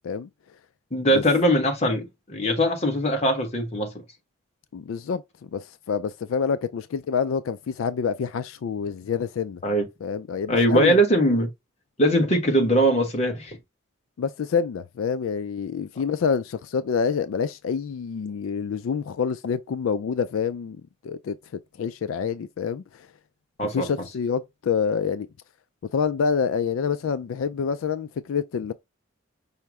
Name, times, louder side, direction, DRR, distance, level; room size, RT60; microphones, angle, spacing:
voice 1, 0.9-3.9 9.6-9.8 10.5-11.5 12.0-13.6 23.6-23.9, equal, 30° left, 1.1 m, -21 dB
voice 2, 4.7-9.6 10.0-11.0 14.2-20.8 21.0-21.4 21.8-23.1 23.7-25.3 25.9-28.7, left 6 dB, 80° left, 0.3 m, -27 dB
5.7 x 2.0 x 4.7 m
head